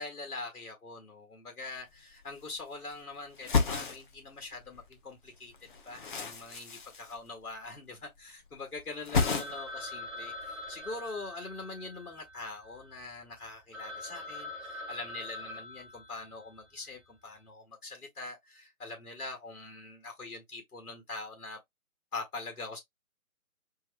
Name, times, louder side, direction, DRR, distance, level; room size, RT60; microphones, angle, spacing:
voice 1, 0.0-5.5 5.8-21.6 22.1-22.8, left 3 dB, 85° left, 1.8 m, -43 dB
sound 1, 1.8-1.9 2.1-3.0 3.3-5.0 5.2-8.5 8.8-9.8 10.1-10.9, left 5 dB, 35° left, 0.9 m, -33 dB
Telephone, 9.2-13.0 13.4-13.5 13.7-16.6, left 1 dB, ahead, 0.8 m, -44 dB
4.6 x 2.4 x 3.4 m
hypercardioid pair, 155°, 44 cm